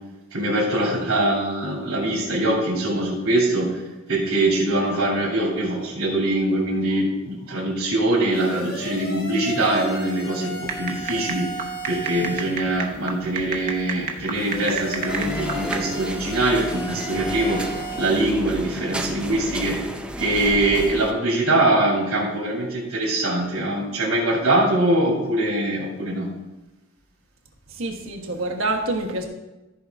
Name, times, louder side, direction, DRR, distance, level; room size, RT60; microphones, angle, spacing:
voice 1, 0.3-3.7 4.1-11.5 11.9-17.6 18.0-19.8 20.2-26.3, right 1 dB, 90° right, -2 dB, 2.9 m, -23 dB
sound 1, 8.3-12.6 14.3-18.1, equal, 50° left, 1.4 m, -34 dB
sound 2, 10.7-15.8, right 5 dB, 40° right, 1.0 m, -32 dB
sound 3, 15.1-21.1, right 1 dB, 5° right, 0.5 m, -32 dB
voice 2, 27.7-29.3, right 2 dB, 65° right, 1 dB, 1.3 m, -27 dB
14.5 x 4.8 x 3.6 m, 1.1 s
head